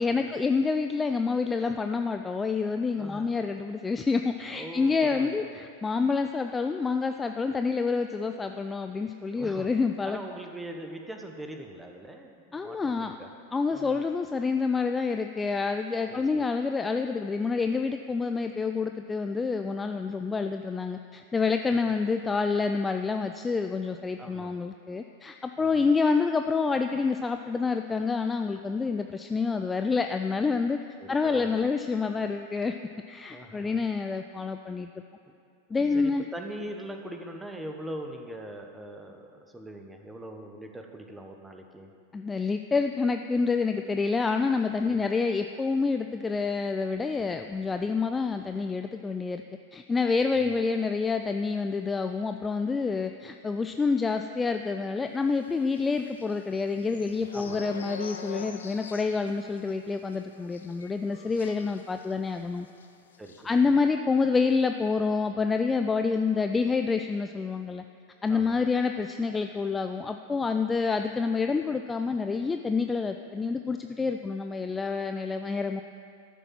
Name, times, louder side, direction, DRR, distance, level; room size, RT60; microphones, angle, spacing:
voice 1, 0.0-10.2 12.5-13.2 13.5-30.8 31.1-32.8 33.1-34.9 35.7-36.2 42.1-49.4 49.7-62.7 63.4-67.8 68.2-75.8, left 4 dB, 15° left, 7 dB, 0.4 m, -28 dB
voice 2, 3.0-3.3 4.5-5.5 9.3-9.7 10.0-13.3 13.7-14.0 16.1-16.4 21.7-21.8 24.2-24.5 25.6-25.9 31.0-31.7 33.3-33.8 35.3-35.4 35.9-41.9 44.8-45.0 50.3-50.6 57.3-57.6 63.2-63.7 68.3-68.6, right 1 dB, 10° right, 4 dB, 1.2 m, -42 dB
sound 1, 55.7-62.4 62.7-62.9 63.1-63.4, left 4 dB, 70° left, 0.8 m, -44 dB
13.0 x 6.9 x 7.5 m, 2.4 s
figure-of-eight pair, 90°, 0 cm